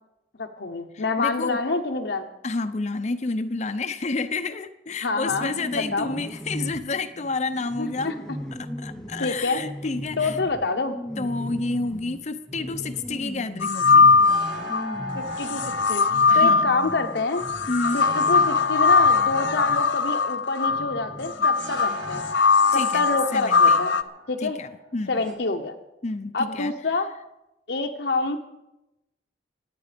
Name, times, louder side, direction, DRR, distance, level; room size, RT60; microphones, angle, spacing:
voice 1, 0.4-2.3 5.0-6.2 7.8-8.1 9.2-9.6 10.2-11.0 15.1-15.6 15.9-16.0 16.3-17.4 17.9-22.3 22.7-23.9 24.3-24.6 25.1-25.7 26.3-27.1 27.7-28.4, left 3 dB, 65° left, 4 dB, 0.9 m, -27 dB
voice 2, 0.9-1.6 2.4-8.1 8.6-10.4 11.2-14.1 16.3-16.7 17.7-18.0 22.7-23.9 24.4-25.2 26.0-26.7, left 3 dB, 40° left, 8 dB, 0.7 m, -30 dB
sound 1, 5.2-19.9 20.7-22.5, equal, 5° left, 0.7 m, -38 dB
sound 2, 13.6-14.8 15.4-24.0, left 4 dB, 85° left, 0.7 m, -20 dB
sound 3, 13.6-25.3, left 1 dB, 80° right, 4.1 m, -37 dB
25.0 x 9.4 x 5.2 m, 0.92 s
head